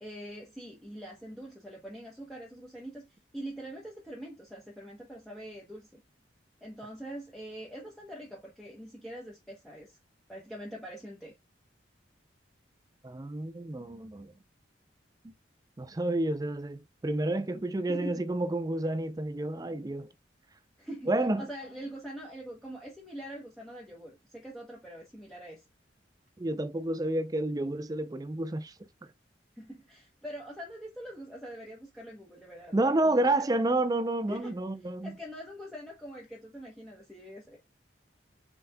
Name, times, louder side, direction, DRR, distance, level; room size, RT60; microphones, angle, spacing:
voice 1, 0.0-3.1 3.3-6.0 6.6-10.0 10.3-11.3 17.9-18.3 20.8-21.1 21.4-25.6 29.6-33.5 34.3-34.5 35.0-37.6, equal, ahead, 0.9 m, -43 dB
voice 2, 13.0-14.3 15.8-20.1 21.1-21.5 26.4-28.8 32.7-35.1, right 2 dB, 20° right, 0.4 m, -30 dB
5.5 x 4.0 x 2.2 m
head